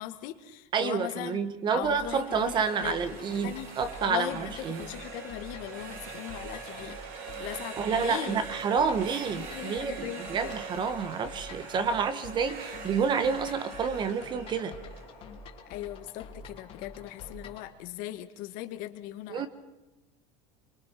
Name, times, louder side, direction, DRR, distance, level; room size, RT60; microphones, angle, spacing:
voice 1, 0.0-1.4 1.7-3.7 4.0-7.0 7.4-8.4 9.4-10.6 15.7-19.5, left 14 dB, 50° left, 9 dB, 1.7 m, -39 dB
voice 2, 0.7-4.8 7.8-14.7 19.3-19.5, right 6 dB, 25° right, 12 dB, 1.3 m, -29 dB
sound 1, 1.8-17.7, left 3 dB, 35° left, 2.7 m, -47 dB
sound 2, 2.0-15.8, right 5 dB, 55° right, 3.4 m, -43 dB
24.5 x 24.0 x 6.0 m, 1.0 s
cardioid pair, 165°, 17 cm